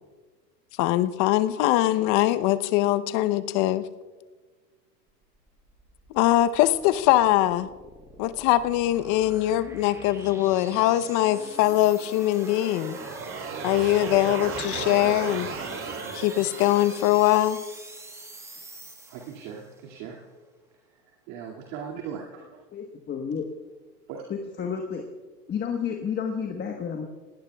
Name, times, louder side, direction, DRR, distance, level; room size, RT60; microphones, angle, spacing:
voice 1, 0.8-3.8 6.1-7.7 8.2-13.0 13.6-15.5 16.1-17.6, left 15 dB, 40° left, 14 dB, 0.8 m, -22 dB
sound 1, 5.2-19.8, right 2 dB, 5° right, 1.2 m, -44 dB
sound 2, 12.2-17.2, right 5 dB, 25° right, 2.3 m, -35 dB
voice 2, 19.1-20.2 20.9-21.0 21.3-22.6 24.1-24.2, right 7 dB, 50° right, -1 dB, 2.4 m, -38 dB
voice 3, 22.7-23.4 24.3-25.0 25.5-27.1, left 7 dB, 20° left, 2 dB, 1.3 m, -31 dB
29.5 x 18.5 x 2.3 m, 1.4 s
hypercardioid pair, 110°, 50 cm